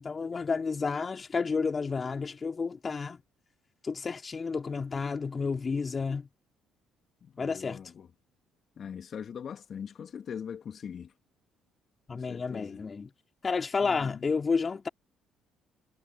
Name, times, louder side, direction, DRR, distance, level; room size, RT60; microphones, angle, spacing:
voice 1, 0.0-3.2 3.8-6.3 7.4-7.8 12.1-13.1 13.4-14.9, left 5 dB, 35° left, 3.4 m, -31 dB
voice 2, 7.2-8.1 8.8-11.1 12.1-12.8 13.8-14.3, left 7 dB, 50° left, 3.1 m, -41 dB
hypercardioid pair, 50°, 0 cm